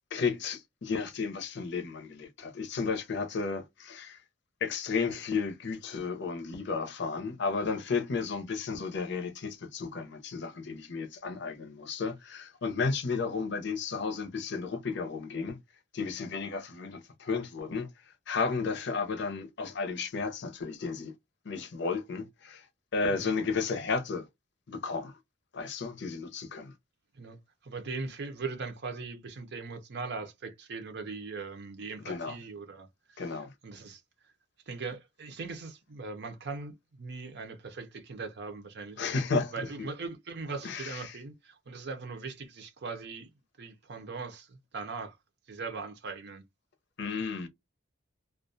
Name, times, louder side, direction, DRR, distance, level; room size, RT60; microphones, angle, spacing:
voice 1, 0.1-4.2 4.6-15.6 15.9-17.9 18.3-21.1 21.4-22.7 22.9-24.3 24.7-25.2 25.5-26.7 32.0-32.4 33.2-33.5 39.0-39.9 40.6-41.2 47.0-47.5, left 4 dB, 60° left, 0.6 m, -33 dB
voice 2, 27.6-34.0 34.7-39.0 39.5-43.3 43.6-45.2 45.5-46.4, right 4 dB, 60° right, 0.6 m, -40 dB
2.3 x 2.2 x 2.5 m
head